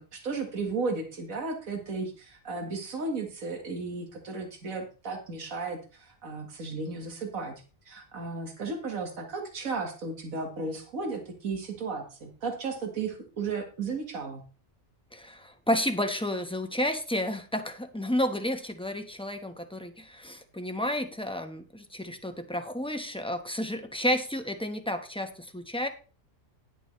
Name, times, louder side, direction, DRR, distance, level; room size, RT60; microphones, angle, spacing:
voice 1, 0.0-7.5 7.9-14.4, right 4 dB, 85° right, 3 dB, 2.1 m, -34 dB
voice 2, 15.1-25.9, left 1 dB, 5° left, 6 dB, 1.0 m, -31 dB
11.0 x 9.7 x 3.2 m, 0.35 s
omnidirectional pair, 1.4 m